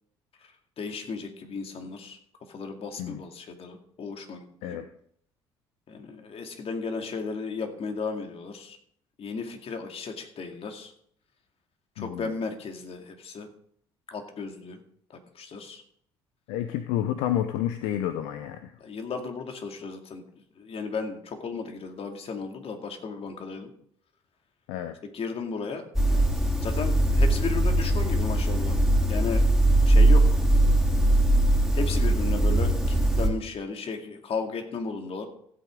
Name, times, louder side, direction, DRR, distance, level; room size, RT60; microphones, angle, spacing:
voice 1, 0.8-2.2 2.5-4.8 5.9-8.8 9.2-10.9 12.0-13.5 14.1-14.8 15.1-15.8 18.8-20.2 20.6-23.7 25.1-28.7 29.1-29.5 29.8-30.4 31.7-35.3, left 4 dB, 50° left, 4 dB, 2.3 m, -35 dB
voice 2, 12.0-12.3 16.5-18.7 24.7-25.0, left 11 dB, 75° left, 10 dB, 0.7 m, -30 dB
sound 1, 25.9-33.3, right 1 dB, ahead, 3.2 m, -21 dB
15.5 x 8.7 x 3.7 m, 0.66 s
hypercardioid pair, 55°, 13 cm